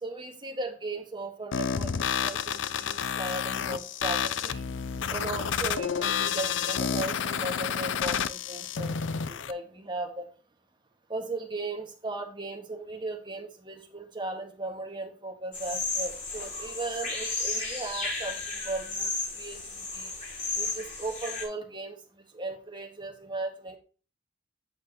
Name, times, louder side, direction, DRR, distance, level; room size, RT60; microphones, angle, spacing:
voice 1, 0.0-4.7 5.1-9.0 9.3-10.3 11.1-19.6 19.9-20.1 20.6-22.0 22.3-23.8, right 2 dB, 25° right, 2 dB, 1.8 m, -37 dB
sound 1, 1.5-9.5, left 7 dB, 70° left, 0.5 m, -30 dB
sound 2, 15.5-21.4, left 3 dB, 45° left, 4.6 m, -33 dB
9.0 x 6.5 x 3.0 m, 0.36 s
head